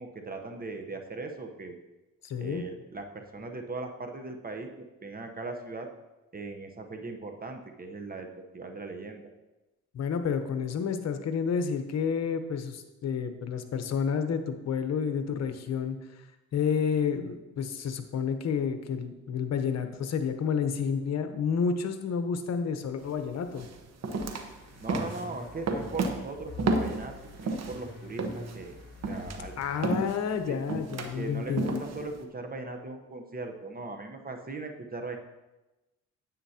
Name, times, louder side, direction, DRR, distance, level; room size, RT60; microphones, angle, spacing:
voice 1, 0.0-1.8 2.4-4.7 5.0-5.9 6.3-8.3 8.5-9.2 24.8-27.1 27.4-28.8 29.1-29.5 30.5-30.6 31.1-35.2, right 3 dB, 30° right, 5 dB, 1.0 m, -39 dB
voice 2, 2.2-2.6 9.9-16.0 16.5-23.7 29.6-31.8, left 6 dB, 60° left, 7 dB, 1.0 m, -30 dB
sound 1, 23.0-23.1 23.6-27.8 28.2-32.2, right 3 dB, 60° right, 1.1 m, -32 dB
sound 2, 24.2-29.8, left 4 dB, 35° left, 1.5 m, -45 dB
9.8 x 8.6 x 2.9 m, 1.1 s
cardioid pair, 90°, 30 cm